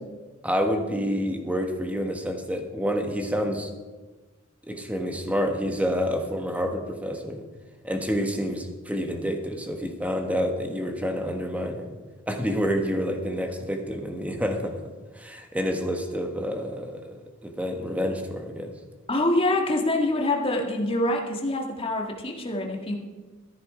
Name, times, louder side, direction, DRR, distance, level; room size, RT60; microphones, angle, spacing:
voice 1, 0.4-3.7 4.7-7.4 7.8-12.0 12.3-14.7 15.1-17.1 17.4-18.7, equal, 5° right, 4 dB, 1.3 m, -28 dB
voice 2, 19.1-23.0, left 1 dB, 25° left, 0 dB, 1.8 m, -25 dB
14.5 x 10.5 x 4.9 m, 1.3 s
head